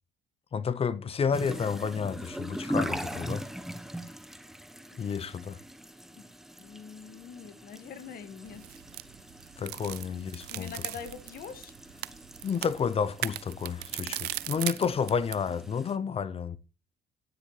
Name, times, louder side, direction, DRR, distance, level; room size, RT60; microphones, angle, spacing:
voice 1, 0.5-3.4 5.0-5.6 9.6-10.7 12.4-16.6, left 6 dB, 35° left, 0.7 m, -30 dB
sound 1, 1.3-16.0, equal, ahead, 1.0 m, -41 dB
voice 2, 4.8-5.3 5.8-6.3 6.6-8.8 10.5-11.7, left 7 dB, 60° left, 1.9 m, -45 dB
sound 2, 8.5-15.4, right 17 dB, 75° right, 0.5 m, -39 dB
13.0 x 10.0 x 3.3 m
cardioid pair, 110°, 17 cm